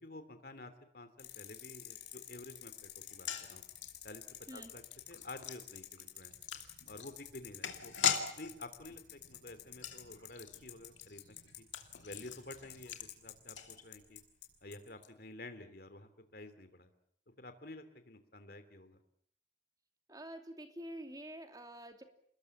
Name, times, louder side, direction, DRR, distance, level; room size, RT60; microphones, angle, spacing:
voice 1, 0.0-3.6 4.0-4.2 4.5-6.3 6.9-11.7 12.0-14.2 14.6-16.9 17.4-19.0, left 2 dB, 50° left, 10 dB, 2.9 m, -51 dB
sound 1, 1.2-14.5 14.7-14.8, left 13 dB, 70° left, 5.7 m, -49 dB
sound 2, 3.0-14.2 14.5-14.6 14.9-15.1, left 7 dB, 90° left, 2.6 m, -41 dB
voice 2, 20.1-22.0, right 1 dB, 20° right, 6 dB, 2.7 m, -47 dB
29.0 x 20.5 x 7.3 m, 0.65 s
head